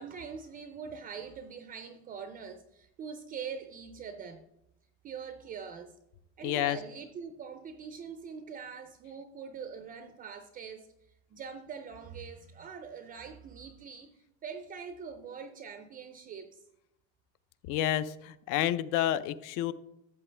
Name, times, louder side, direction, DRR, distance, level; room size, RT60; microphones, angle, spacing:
voice 1, 0.0-4.4 5.0-6.0 6.4-10.9 11.3-16.6, right 6 dB, 25° right, 0.4 m, -43 dB
voice 2, 6.4-6.8 17.7-19.7, left 12 dB, 60° left, 0.6 m, -29 dB
13.0 x 7.3 x 3.3 m
cardioid pair, 155°, 35 cm